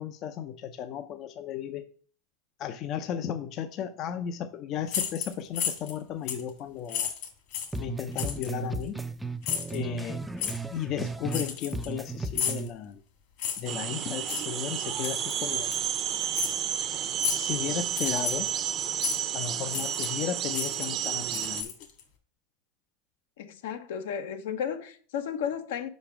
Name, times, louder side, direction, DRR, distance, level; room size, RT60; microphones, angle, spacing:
voice 1, 0.0-1.8 2.6-7.1 7.8-9.0 9.7-10.2 10.7-13.0 13.6-15.7 17.3-18.5 19.3-21.7, left 9 dB, 50° left, 0.6 m, -35 dB
sound 1, 4.9-6.0 6.3-6.5 6.9-7.8 8.2-8.5 9.4-9.8 10.4-10.6 11.3-12.0 12.3-12.7 13.4-13.7 14.3-14.5 15.0-15.4 15.7-15.9 16.3-16.6 17.2-17.5 17.9-18.5 19.0-19.2 19.7-20.2 20.5-22.0, left 8 dB, 65° left, 2.1 m, -32 dB
sound 2, 7.7-11.5 11.7-12.7, right 3 dB, 5° right, 0.5 m, -35 dB
sound 3, 13.6-21.6, right 9 dB, 45° right, 0.8 m, -31 dB
voice 2, 23.4-25.9, left 8 dB, 80° left, 1.0 m, -33 dB
5.2 x 5.0 x 5.9 m
supercardioid pair, 115°, 0 cm